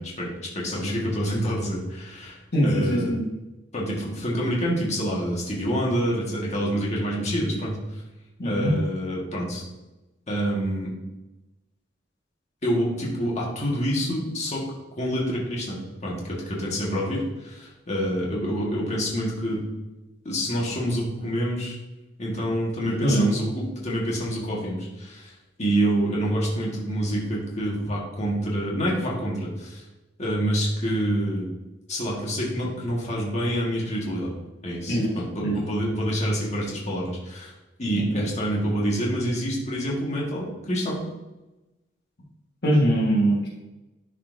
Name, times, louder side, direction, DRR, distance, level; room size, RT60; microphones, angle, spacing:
voice 1, 0.0-3.1 3.7-8.0 8.4-9.6 10.3-10.9 12.6-14.7 15.0-19.6 20.2-21.8 22.2-25.3 25.6-29.8 30.2-31.5 31.9-34.3 34.6-37.5 37.8-41.0, equal, 35° left, -4 dB, 1.6 m, -27 dB
voice 2, 2.5-3.2 8.4-8.7 22.8-23.3 34.9-35.1 35.4-35.6 37.9-38.3 42.6-43.5, right 1 dB, 60° left, -4 dB, 1.5 m, -22 dB
11.0 x 4.3 x 2.6 m, 1.0 s
head